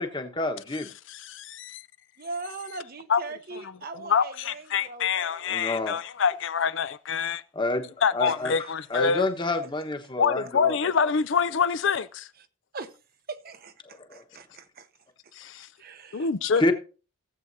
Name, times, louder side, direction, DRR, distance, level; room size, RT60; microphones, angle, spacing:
voice 1, 0.0-0.9 5.2-6.0 7.5-10.8 14.0-14.2 16.6-16.7, left 2 dB, 20° left, 1.1 m, -29 dB
voice 2, 1.1-1.8 3.1-3.2 4.1-7.4 8.0-9.3 10.2-12.3 15.3-15.7 16.1-16.7, left 6 dB, 55° left, 0.4 m, -26 dB
voice 3, 2.2-5.3 5.6-5.8 8.3-8.7 8.9-9.0 12.7-12.9 13.3-14.9 15.8-16.3 16.5-16.6, right 3 dB, 45° right, 0.8 m, -40 dB
17.0 x 7.8 x 2.7 m
head